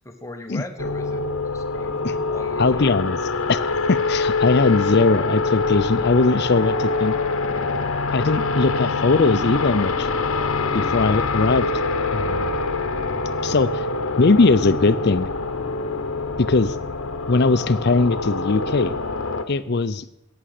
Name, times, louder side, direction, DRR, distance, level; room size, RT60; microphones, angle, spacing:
voice 1, 0.0-1.2 1.5-3.0, left 1 dB, 15° left, 5 dB, 1.0 m, -38 dB
sound 1, 0.8-19.4, left 3 dB, 70° left, 0.9 m, -25 dB
voice 2, 2.6-3.2 3.5-3.6 3.9-7.1 8.1-10.1 10.7-11.7 12.1-12.5 13.4-13.8 14.2-15.3 16.4-16.8 17.3-18.9 19.5-20.0, left 3 dB, 50° left, 14 dB, 0.6 m, -20 dB
11.0 x 8.9 x 6.6 m, 0.85 s
head